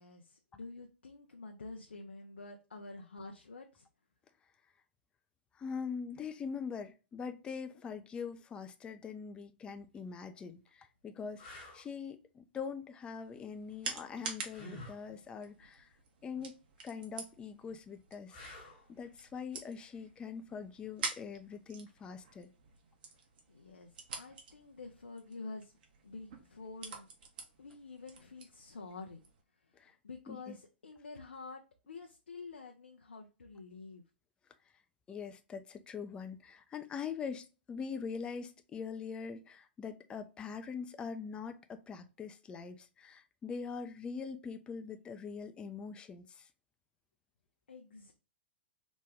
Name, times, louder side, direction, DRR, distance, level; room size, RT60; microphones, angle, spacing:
voice 1, 0.0-3.9 23.5-25.7 26.0-27.1 27.6-29.2 29.8-34.0 47.7-48.1, left 3 dB, 80° left, 0.5 m, -48 dB
voice 2, 5.5-15.9 16.2-16.5 16.8-18.4 18.9-22.5 29.8-30.0 30.3-30.6 35.1-46.5, left 6 dB, 15° left, 0.3 m, -43 dB
sound 1, 9.8-10.0 10.7-10.8 11.4-11.8 14.5-15.0 18.3-18.9 21.9-22.0, left 1 dB, 50° left, 1.2 m, -49 dB
sound 2, 13.0-29.4, right 4 dB, 55° right, 0.8 m, -48 dB
3.0 x 2.2 x 3.3 m
figure-of-eight pair, 110°, 6 cm